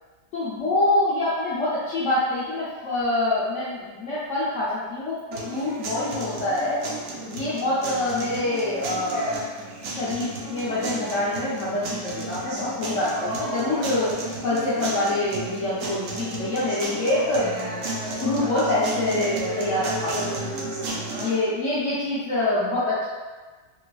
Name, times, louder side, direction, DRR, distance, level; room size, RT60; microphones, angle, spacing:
voice 1, 0.3-6.8 7.2-9.3 9.9-14.1 14.4-17.7 18.2-20.6 21.2-23.0, left 2 dB, 75° left, -10 dB, 0.7 m, -25 dB
sound 1, 5.3-21.3, right 2 dB, 90° right, 0.6 m, -33 dB
3.3 x 3.1 x 2.3 m, 1.3 s
omnidirectional pair, 2.0 m